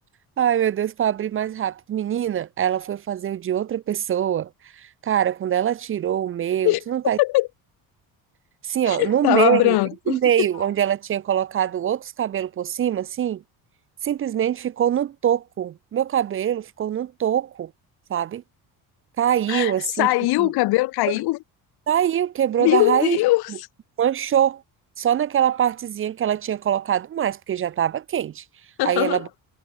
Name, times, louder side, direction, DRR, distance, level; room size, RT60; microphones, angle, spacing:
voice 1, 0.4-7.2 8.6-9.8 10.1-13.4 14.0-17.7 18.1-18.4 19.2-20.1 20.4-20.5 21.9-23.2 24.0-24.6 25.0-28.4 28.8-29.3, right 10 dB, 35° right, 0.6 m, -23 dB
voice 2, 6.6-7.5 8.9-10.5 19.5-21.4 22.6-23.5 28.8-29.2, left 20 dB, 80° left, 1.5 m, -21 dB
cardioid pair, 145°, 38 cm